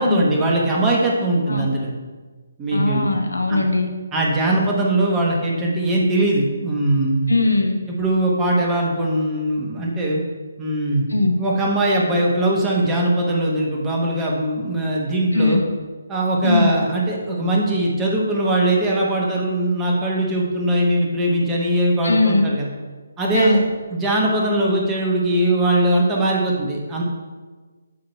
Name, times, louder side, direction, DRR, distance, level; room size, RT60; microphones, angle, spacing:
voice 1, 0.0-1.9 2.6-3.2 3.5-3.6 4.1-7.3 7.9-10.2 10.6-11.0 11.4-15.6 16.1-22.7 23.2-23.6 23.9-27.0, right 1 dB, 15° right, -2 dB, 1.1 m, -20 dB
voice 2, 2.7-3.9 7.3-7.8 11.1-11.4 15.3-15.6 16.4-16.7 22.0-22.5 23.3-23.6, left 2 dB, 80° left, 4 dB, 0.9 m, -19 dB
7.6 x 2.9 x 5.6 m, 1.4 s
figure-of-eight pair, 145°, 0 cm